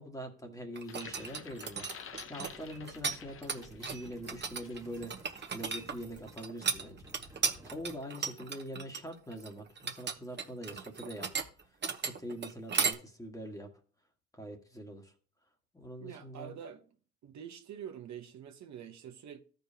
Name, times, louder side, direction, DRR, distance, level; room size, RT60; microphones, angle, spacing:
voice 1, 0.0-5.1 5.5-11.3 12.0-13.7 14.3-15.1 15.7-16.6, equal, 10° left, 1.6 m, -44 dB
sound 1, 0.7-4.2 4.6-4.8, left 7 dB, 45° left, 0.7 m, -50 dB
sound 2, 0.7-3.2 3.4-12.9, right 5 dB, 35° right, 1.0 m, -35 dB
sound 3, 2.2-6.5 6.7-8.0, right 1 dB, 10° right, 1.4 m, -56 dB
voice 2, 16.0-16.8 17.2-19.4, right 9 dB, 65° right, 1.0 m, -46 dB
14.0 x 5.3 x 2.8 m
cardioid pair, 90°, 30 cm